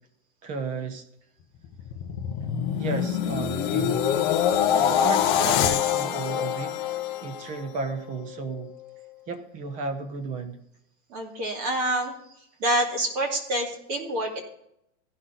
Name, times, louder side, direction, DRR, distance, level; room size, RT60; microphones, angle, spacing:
voice 1, 0.4-1.0 2.8-4.0 4.8-6.8 7.2-8.7 9.3-10.6, right 4 dB, 20° right, 8 dB, 0.9 m, -33 dB
sound 1, 1.6-7.9 8.3-8.6, left 9 dB, 15° left, 0.4 m, -25 dB
voice 2, 11.1-12.2 12.6-14.4, right 1 dB, 35° right, 1 dB, 2.5 m, -27 dB
16.0 x 6.0 x 3.9 m, 0.78 s
supercardioid pair, 170°, 38 cm